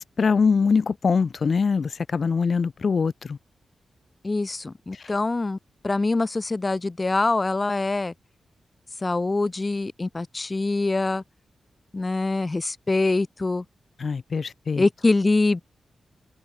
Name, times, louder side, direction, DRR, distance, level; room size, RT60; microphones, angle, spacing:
voice 1, 0.0-3.4 14.0-14.8, left 5 dB, 45° left, 1.7 m, -23 dB
voice 2, 4.2-5.6 5.8-8.1 9.0-11.2 11.9-13.6 14.8-15.6, left 3 dB, 20° left, 1.6 m, -24 dB
wide cardioid pair, 150°, 0 cm